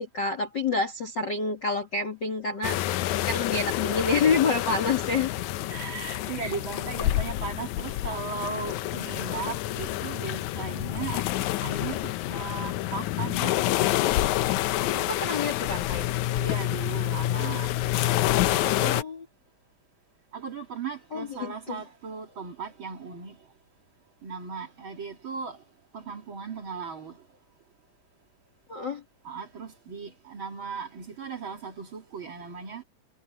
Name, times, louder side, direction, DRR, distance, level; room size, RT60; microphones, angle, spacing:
voice 1, 0.0-2.8 3.3-5.3 6.4-6.5 14.8-16.1 18.8-19.3 21.1-21.8 28.7-29.0, left 4 dB, 35° left, 2.0 m, -28 dB
sound 1, 2.6-19.0, left 14 dB, 85° left, 1.7 m, -28 dB
voice 2, 3.9-4.3 5.7-11.3 11.6-13.7 16.4-17.7 18.4-19.0 20.3-23.4 24.2-25.6 25.9-27.2 29.2-32.8, right 5 dB, 40° right, 2.5 m, -37 dB
omnidirectional pair, 4.2 m